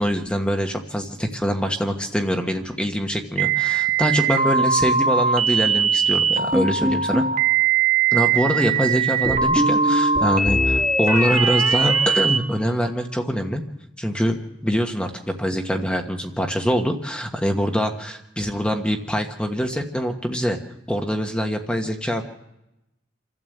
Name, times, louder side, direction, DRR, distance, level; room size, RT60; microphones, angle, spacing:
voice 1, 0.0-7.2 8.1-13.6 14.0-20.6 20.9-22.2, equal, 5° left, 4 dB, 1.4 m, -24 dB
sound 1, 3.4-12.4, right 5 dB, 40° right, 0.9 m, -21 dB
sound 2, 6.5-7.4 9.3-13.0, right 1 dB, 20° right, 1.8 m, -25 dB
28.0 x 12.5 x 8.0 m, 0.89 s
head